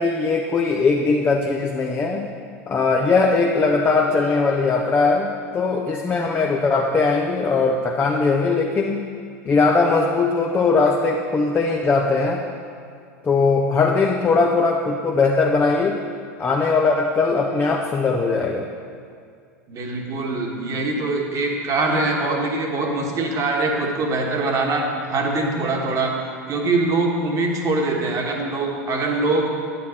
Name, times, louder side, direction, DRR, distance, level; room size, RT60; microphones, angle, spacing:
voice 1, 0.0-2.2 2.7-9.0 9.4-12.4 13.2-16.0 16.4-18.7, left 4 dB, 25° left, 1 dB, 0.7 m, -20 dB
voice 2, 19.7-26.1 26.5-29.5, right 2 dB, 40° right, 1 dB, 1.5 m, -23 dB
9.5 x 8.5 x 4.4 m, 2.2 s
figure-of-eight pair, 80°, 9 cm